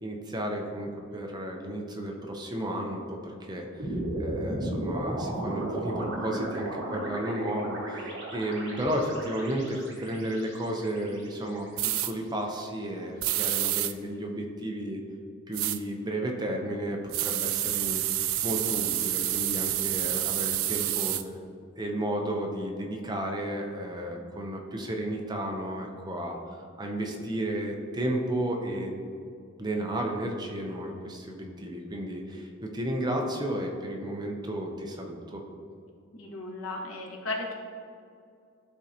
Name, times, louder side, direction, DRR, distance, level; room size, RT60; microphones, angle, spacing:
voice 1, 0.0-3.9 4.2-15.0 15.5-18.0 18.4-21.3 21.8-26.4 26.8-29.0 29.6-35.4, right 1 dB, 20° right, 1 dB, 0.7 m, -33 dB
sound 1, 3.8-12.1, right 1 dB, 65° right, 1.5 m, -35 dB
sound 2, 11.8-12.1 13.2-13.9 15.5-15.8 17.1-21.2, right 13 dB, 80° right, 0.4 m, -28 dB
voice 2, 36.1-37.5, left 2 dB, 85° left, -1 dB, 1.2 m, -35 dB
11.5 x 3.8 x 2.8 m, 2.4 s
head